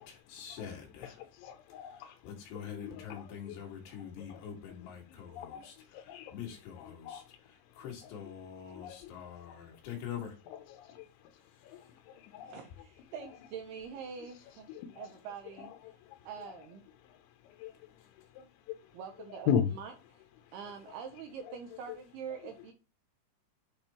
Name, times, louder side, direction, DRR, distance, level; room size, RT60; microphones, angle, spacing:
voice 1, 0.0-1.2 1.8-10.4 11.6-11.9 17.6-17.7, left 8 dB, 70° left, 3.9 m, -45 dB
voice 2, 1.0-2.2 2.7-4.4 5.1-6.3 6.7-7.4 7.8-8.1 8.7-9.6 10.7-11.1 11.3-12.6 14.2-14.3 14.7-15.1 15.6-16.2 17.4-18.9 19.3-19.7 20.4-20.5 21.4-21.6 21.9-22.0 22.3-22.4, left 8 dB, 90° left, 3.2 m, -39 dB
voice 3, 12.5-14.7 14.9-15.7 16.3-16.8 18.9-19.9 20.5-22.7, right 7 dB, 75° right, 2.5 m, -44 dB
8.6 x 5.1 x 3.0 m
omnidirectional pair, 5.2 m